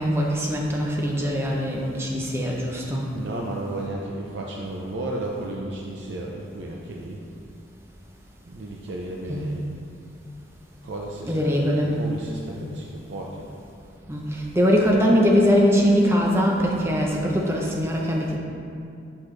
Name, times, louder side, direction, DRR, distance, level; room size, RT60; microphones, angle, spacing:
voice 1, 0.0-3.1 9.3-9.5 11.3-12.0 14.1-18.4, equal, 15° right, -2 dB, 0.7 m, -22 dB
voice 2, 3.1-7.2 8.5-9.7 10.8-13.5, right 1 dB, 65° right, -1 dB, 0.5 m, -33 dB
6.5 x 5.8 x 3.2 m, 2.5 s
head